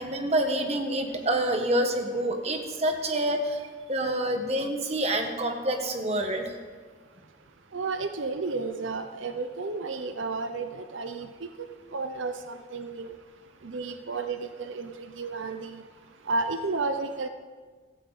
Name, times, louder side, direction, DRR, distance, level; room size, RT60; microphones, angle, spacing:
voice 1, 0.0-3.6 3.9-6.6, right 1 dB, 35° right, 5 dB, 1.4 m, -27 dB
voice 2, 7.7-13.1 13.6-15.8 16.2-17.3, right 3 dB, 90° right, 8 dB, 0.8 m, -32 dB
16.0 x 15.0 x 4.1 m, 1.5 s
head